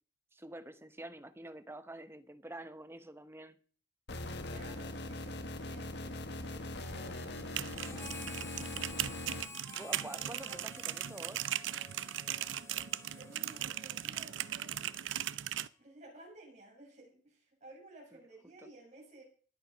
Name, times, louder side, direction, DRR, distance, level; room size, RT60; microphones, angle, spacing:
voice 1, 0.3-3.6 9.7-11.5, right 1 dB, 15° right, 0.9 m, -47 dB
sound 1, 4.1-9.4, left 2 dB, 65° left, 1.6 m, -41 dB
voice 2, 4.5-8.3 9.8-10.7 12.5-14.9 15.8-19.2, right 2 dB, 40° right, 7.8 m, -56 dB
sound 2, 7.4-15.7, right 11 dB, 80° right, 0.6 m, -38 dB
Harmonica, 7.8-15.5, left 3 dB, 15° left, 1.0 m, -52 dB
19.5 x 8.7 x 5.2 m
head